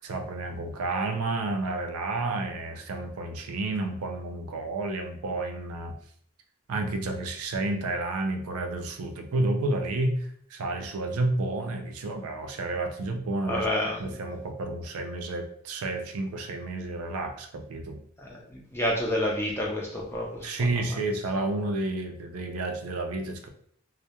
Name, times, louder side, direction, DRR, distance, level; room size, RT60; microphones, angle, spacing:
voice 1, 0.0-5.9 6.7-13.7 14.0-18.0 20.4-23.5, right 2 dB, 85° right, 5 dB, 0.4 m, -30 dB
voice 2, 13.5-14.0 18.2-20.5, left 1 dB, 10° left, -2 dB, 0.4 m, -29 dB
2.2 x 2.1 x 2.8 m, 0.64 s
head